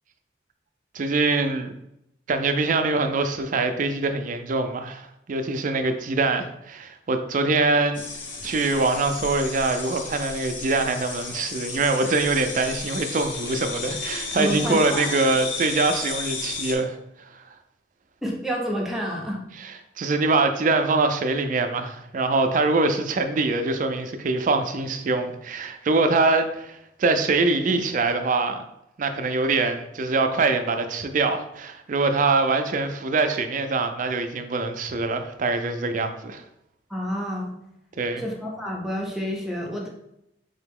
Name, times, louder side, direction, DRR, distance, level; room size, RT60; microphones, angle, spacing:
voice 1, 0.9-1.7 2.3-8.0 8.4-17.0 19.6-28.6 29.0-36.4 38.0-38.2, right 3 dB, 45° right, 7 dB, 0.4 m, -24 dB
sound 1, 7.9-16.8, left 4 dB, 90° left, 0.8 m, -33 dB
voice 2, 14.4-15.1 18.2-19.4 36.9-37.5 38.2-39.9, equal, ahead, -1 dB, 0.6 m, -29 dB
3.9 x 2.9 x 3.5 m, 0.81 s
head